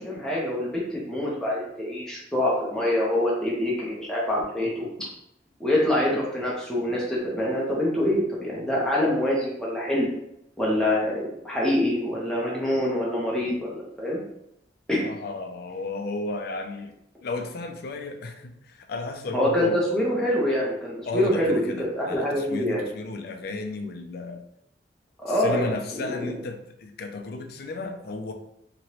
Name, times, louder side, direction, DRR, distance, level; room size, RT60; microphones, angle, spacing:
voice 1, 0.0-5.1 5.6-10.1 10.6-14.2 14.9-15.1 19.3-22.9 25.2-26.3, left 1 dB, 5° left, -5 dB, 0.7 m, -25 dB
voice 2, 15.0-16.9 17.2-19.8 21.0-24.4 25.3-28.3, left 3 dB, 60° left, 5 dB, 0.4 m, -34 dB
3.0 x 2.9 x 2.9 m, 0.79 s
head